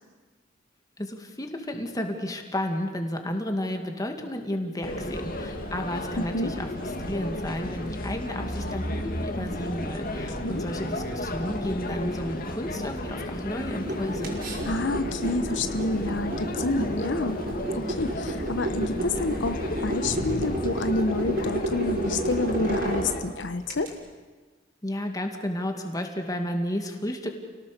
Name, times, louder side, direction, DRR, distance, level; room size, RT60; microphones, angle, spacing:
voice 1, 1.0-14.4 24.8-27.3, left 1 dB, 20° left, 4 dB, 2.3 m, -32 dB
sound 1, 4.8-23.2, left 1 dB, 50° left, 2.3 m, -33 dB
voice 2, 6.2-6.5 10.4-10.7 14.6-23.9, left 2 dB, 85° left, 9 dB, 1.0 m, -29 dB
sound 2, 13.6-23.9, right 1 dB, 55° right, 5.1 m, -32 dB
29.0 x 18.0 x 6.8 m, 1.3 s
head